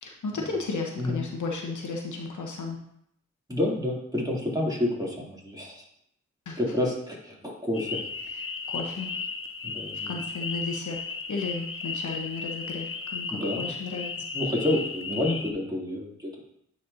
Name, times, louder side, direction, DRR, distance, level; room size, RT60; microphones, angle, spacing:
voice 1, 0.0-2.8 6.5-6.6 8.3-9.1 10.1-11.0 11.3-14.1, left 3 dB, 60° left, 1 dB, 1.1 m, -34 dB
voice 2, 3.5-5.8 6.6-8.0 9.6-10.1 13.3-13.7 14.3-16.3, left 1 dB, 10° right, -4 dB, 2.8 m, -29 dB
sound 1, 7.7-15.5, left 4 dB, 40° left, 0.8 m, -35 dB
9.5 x 4.3 x 2.7 m, 0.73 s
supercardioid pair, 45°, 33 cm